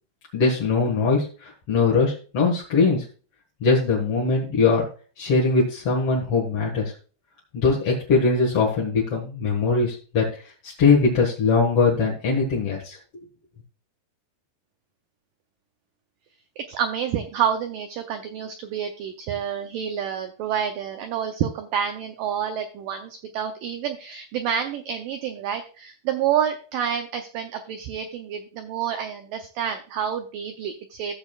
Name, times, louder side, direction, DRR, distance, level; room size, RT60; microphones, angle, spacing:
voice 1, 0.3-3.0 3.6-4.9 5.2-6.9 7.5-10.3 10.6-13.0, left 4 dB, 50° left, -2 dB, 1.9 m, -21 dB
voice 2, 16.6-31.1, right 8 dB, 80° right, 6 dB, 1.9 m, -28 dB
14.5 x 7.2 x 2.4 m, 0.38 s
omnidirectional pair, 4.8 m